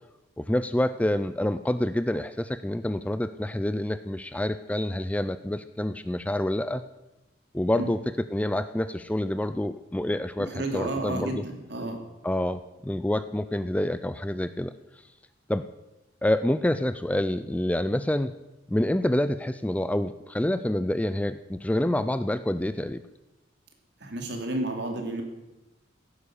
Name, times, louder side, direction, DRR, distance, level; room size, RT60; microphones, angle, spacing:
voice 1, 0.4-6.8 7.5-8.0 8.3-11.4 12.2-14.7 15.5-15.7 16.2-18.3 18.7-23.0, left 1 dB, 5° left, 12 dB, 0.4 m, -27 dB
voice 2, 10.4-12.0 24.0-25.2, right 2 dB, 60° right, 3 dB, 2.8 m, -31 dB
16.5 x 10.0 x 6.5 m, 1.0 s
head